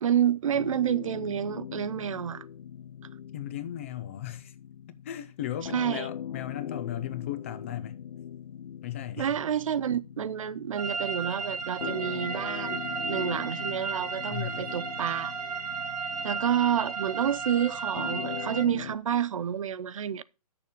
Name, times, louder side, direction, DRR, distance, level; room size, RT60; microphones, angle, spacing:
voice 1, 0.0-2.4 5.7-6.1 9.2-12.8 13.1-15.3 16.2-20.2, right 9 dB, 60° right, 0.5 m, -29 dB
sound 1, 0.5-19.0, left 9 dB, 85° left, 0.5 m, -42 dB
voice 2, 3.3-4.6 5.0-8.0 8.8-9.4 14.3-14.7, left 12 dB, 20° left, 0.4 m, -36 dB
sound 2, 10.8-18.6, right 5 dB, 85° right, 2.5 m, -34 dB
8.5 x 6.8 x 5.0 m
hypercardioid pair, 155°, 19 cm